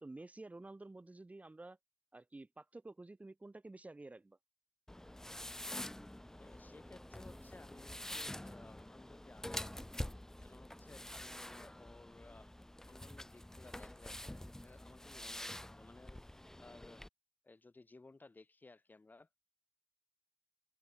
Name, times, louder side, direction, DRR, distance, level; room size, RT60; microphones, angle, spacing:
voice 1, 0.0-1.8 2.1-4.4, right 2 dB, 50° right, 0.9 m, -51 dB
sound 1, 4.9-17.1, left 1 dB, 15° left, 0.4 m, -47 dB
voice 2, 6.4-9.9 10.4-12.5 12.9-16.2 16.6-17.0 17.4-19.3, left 3 dB, 75° left, 2.8 m, -59 dB
open air
wide cardioid pair, 50°, 3 cm